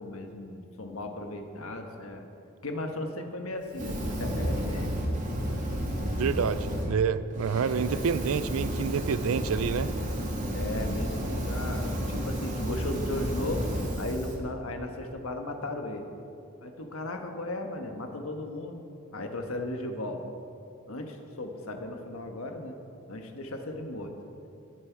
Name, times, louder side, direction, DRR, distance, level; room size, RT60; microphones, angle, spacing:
voice 1, 0.0-2.2 2.6-5.0 10.5-13.7 14.0-16.1 16.6-18.8 19.1-20.2 20.9-22.7 23.1-24.1, left 1 dB, 70° left, 4 dB, 1.4 m, -36 dB
Fire, 3.7-6.9 7.3-14.3, equal, 35° right, 2.3 m, -31 dB
voice 2, 6.2-9.9, right 6 dB, 70° right, 14 dB, 0.4 m, -28 dB
21.5 x 7.8 x 4.7 m, 2.7 s
head